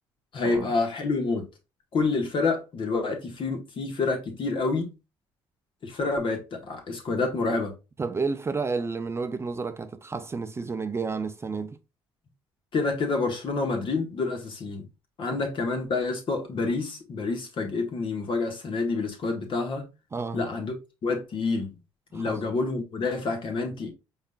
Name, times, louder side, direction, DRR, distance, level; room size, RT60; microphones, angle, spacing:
voice 1, 0.3-1.5 1.9-4.9 5.8-7.8 12.7-14.9 15.2-19.9 20.3-20.8 21.0-21.8 22.1-23.9, left 3 dB, 50° left, 1.7 m, -28 dB
voice 2, 8.0-11.8 15.3-15.4 20.1-20.5 22.1-22.4, right 4 dB, 25° right, 0.5 m, -31 dB
4.9 x 4.1 x 2.4 m
supercardioid pair, 70°, 11 cm